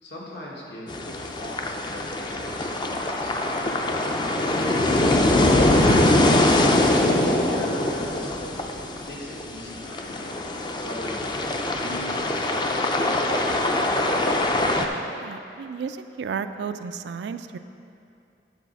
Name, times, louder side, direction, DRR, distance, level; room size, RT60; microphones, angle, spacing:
voice 1, 0.0-5.1 7.2-8.6 9.0-10.4 10.8-11.2 11.7-14.1, left 1 dB, 75° left, -4 dB, 1.8 m, -40 dB
sound 1, 0.9-14.9, left 1 dB, 25° left, 0.4 m, -23 dB
voice 2, 5.6-6.2 15.0-17.6, right 6 dB, 80° right, 10 dB, 0.3 m, -34 dB
10.0 x 4.1 x 5.9 m, 2.6 s
head